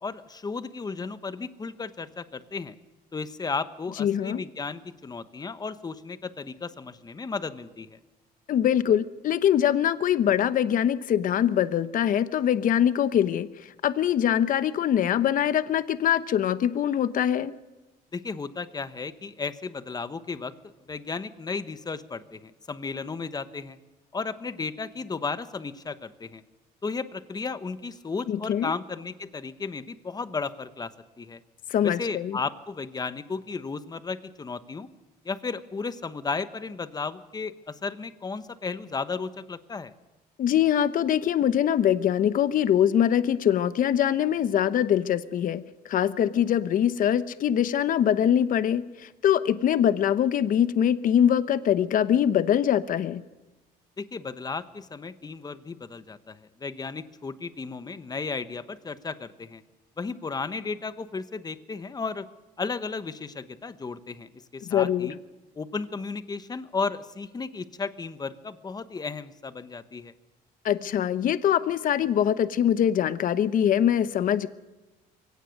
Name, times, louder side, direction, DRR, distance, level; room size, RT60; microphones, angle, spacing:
voice 1, 0.0-2.7 3.1-8.0 18.1-20.5 20.9-23.8 24.1-26.4 26.8-31.4 31.8-34.9 35.2-39.9 54.0-59.6 60.0-62.3 62.6-65.2 65.5-70.1, left 4 dB, 25° left, 12 dB, 1.2 m, -34 dB
voice 2, 4.0-4.4 8.5-17.5 28.3-28.7 31.7-32.4 40.4-53.2 64.6-65.1 70.6-74.5, left 9 dB, 55° left, 13 dB, 0.9 m, -23 dB
23.5 x 17.5 x 6.6 m, 1.1 s
cardioid pair, 110°, 17 cm